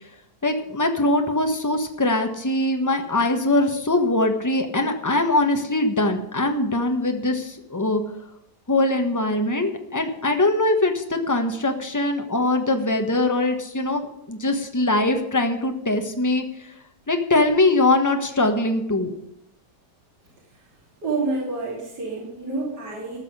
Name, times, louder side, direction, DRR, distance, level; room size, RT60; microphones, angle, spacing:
voice 1, 0.4-8.0 8.7-16.4 17.1-19.1, left 2 dB, 10° left, 5 dB, 1.2 m, -22 dB
voice 2, 21.0-23.2, right 3 dB, 75° right, -4 dB, 3.5 m, -28 dB
14.5 x 6.1 x 9.4 m, 0.82 s
omnidirectional pair, 1.8 m